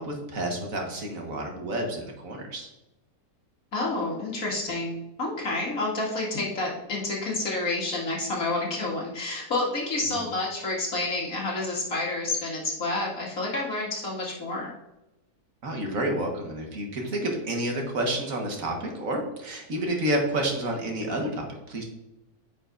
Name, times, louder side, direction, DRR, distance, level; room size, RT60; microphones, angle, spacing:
voice 1, 0.0-2.7 10.1-10.2 15.6-21.8, right 1 dB, 60° right, 1 dB, 1.7 m, -30 dB
voice 2, 3.7-14.7, left 2 dB, 65° left, -4 dB, 2.4 m, -29 dB
9.2 x 5.8 x 2.5 m, 0.95 s
omnidirectional pair, 1.6 m